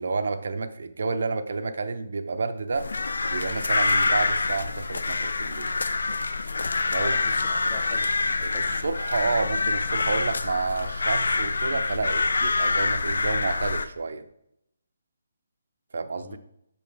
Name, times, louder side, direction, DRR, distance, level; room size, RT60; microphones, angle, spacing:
voice 1, 0.0-2.9 3.3-5.7 6.9-7.1 7.5-7.6 8.4-14.3 15.9-16.4, right 4 dB, 65° right, 9 dB, 0.5 m, -30 dB
sound 1, 2.7-13.9, left 3 dB, 90° left, 0.4 m, -26 dB
voice 2, 6.9-8.8 16.2-16.4, left 6 dB, 25° left, 7 dB, 0.6 m, -43 dB
6.5 x 5.3 x 3.3 m, 0.78 s
hypercardioid pair, 170°, 0 cm